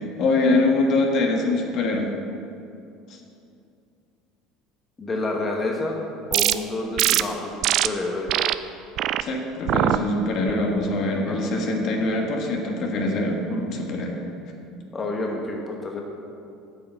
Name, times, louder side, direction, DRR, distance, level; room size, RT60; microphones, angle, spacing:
voice 1, 0.2-2.1 3.1-3.2 9.2-14.2, left 2 dB, 55° left, 1 dB, 1.4 m, -23 dB
voice 2, 5.0-6.0 6.3-8.3 11.3-11.6 14.9-16.0, left 2 dB, 25° left, 0 dB, 1.1 m, -29 dB
sound 1, 6.3-6.5 7.0-7.2 7.6-7.9 8.3-8.5 9.0-9.2 9.7-10.0 10.5-10.8, right 13 dB, 55° right, 0.3 m, -22 dB
8.6 x 5.5 x 6.7 m, 2.6 s
supercardioid pair, 105°, 0 cm